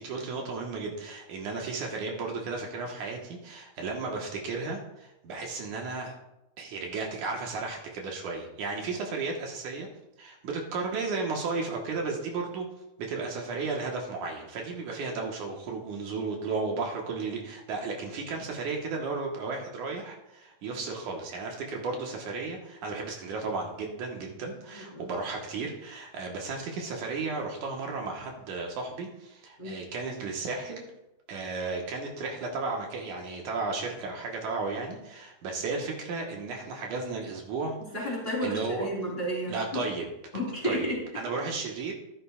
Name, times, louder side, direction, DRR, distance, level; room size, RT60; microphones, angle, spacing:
voice 1, 0.0-6.1 6.6-9.9 10.2-12.7 13.0-30.9 31.3-38.1 38.4-38.9 39.5-40.1 40.6-41.9, right 4 dB, 75° right, 0 dB, 2.6 m, -34 dB
voice 2, 24.7-25.1 29.6-29.8 37.8-39.8 40.3-41.0, equal, 15° left, -4 dB, 3.6 m, -32 dB
14.5 x 10.5 x 2.3 m, 0.91 s
omnidirectional pair, 3.6 m